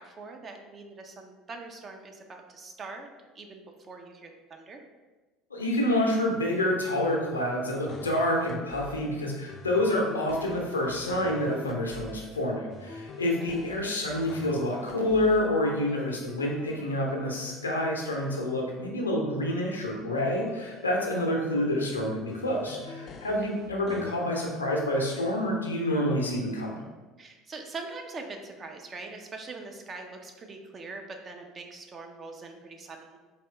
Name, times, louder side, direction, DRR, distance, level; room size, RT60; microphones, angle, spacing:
voice 1, 0.0-3.1 3.3-4.8 13.4-13.5 23.4-23.5 27.2-33.2, right 3 dB, 35° right, 3 dB, 0.6 m, -43 dB
voice 2, 5.5-26.8, left 1 dB, 85° left, 0 dB, 0.6 m, -28 dB
sound 1, 7.9-9.1 9.5-12.3 12.7-15.5 15.8-18.7 20.2-21.7 22.3-24.2, left 3 dB, 40° left, 0.4 m, -45 dB
4.2 x 3.0 x 3.3 m, 1.3 s
figure-of-eight pair, 65°, 0 cm